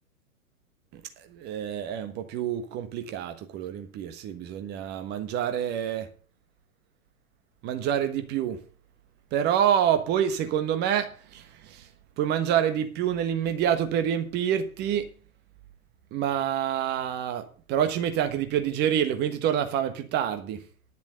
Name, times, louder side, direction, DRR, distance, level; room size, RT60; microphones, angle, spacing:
voice 1, 1.3-6.1 7.6-8.6 9.3-11.8 12.2-15.1 16.1-17.4 17.7-20.6, right 9 dB, 25° right, 8 dB, 1.3 m, -27 dB
10.5 x 7.1 x 6.5 m, 0.41 s
figure-of-eight pair, 110°, 43 cm